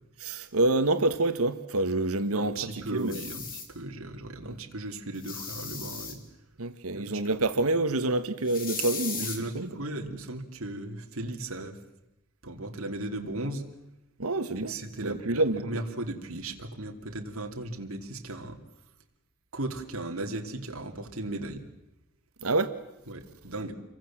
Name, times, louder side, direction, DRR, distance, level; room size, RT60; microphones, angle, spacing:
voice 1, 0.2-3.2 4.4-4.6 6.6-9.3 9.5-9.8 14.2-15.7 22.4-22.8, right 2 dB, 85° right, 1.5 m, -27 dB
voice 2, 2.3-6.2 6.9-7.2 9.2-11.7 12.4-13.6 14.5-18.6 19.5-21.6 23.1-23.7, right 2 dB, 70° right, 2.9 m, -36 dB
sound 1, 3.0-3.7 5.1-6.1 8.5-9.4, left 5 dB, 40° left, 4.0 m, -37 dB
29.0 x 23.5 x 7.5 m
head